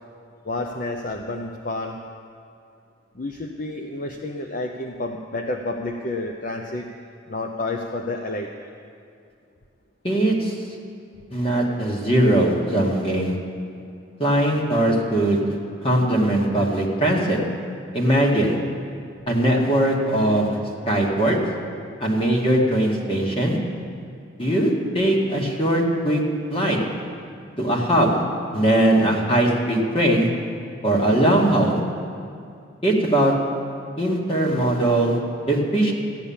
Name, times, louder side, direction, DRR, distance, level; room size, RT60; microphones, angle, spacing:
voice 1, 0.4-2.0 3.1-6.9 7.3-8.5, left 2 dB, 40° left, 3 dB, 0.7 m, -30 dB
voice 2, 10.0-10.6 11.3-13.3 14.2-15.4 15.8-17.4 17.9-18.6 19.3-20.6 20.9-21.4 22.0-23.6 24.4-26.2 26.5-26.8 27.6-28.2 28.5-30.3 30.8-31.8 32.8-33.3 34.0-35.2 35.5-35.9, right 1 dB, 25° left, -2 dB, 1.9 m, -20 dB
15.0 x 10.0 x 7.2 m, 2.5 s
head